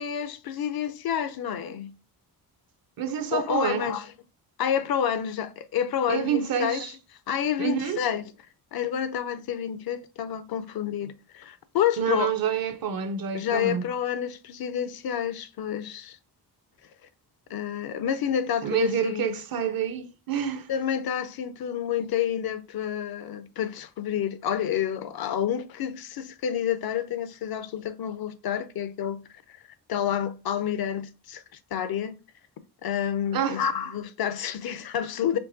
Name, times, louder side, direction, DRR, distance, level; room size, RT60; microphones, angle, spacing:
voice 1, 0.0-1.9 3.3-4.1 4.6-6.9 7.3-8.2 8.7-12.3 13.3-16.2 17.5-19.3 20.7-29.2 29.9-31.4 31.7-32.1 32.8-35.4, left 9 dB, 65° left, 0.5 m, -29 dB
voice 2, 3.0-4.0 6.1-6.9 7.6-8.0 12.0-13.9 18.6-20.7 33.3-33.6, right 8 dB, 60° right, 0.7 m, -28 dB
4.5 x 2.9 x 2.6 m
cardioid pair, 110°, 40 cm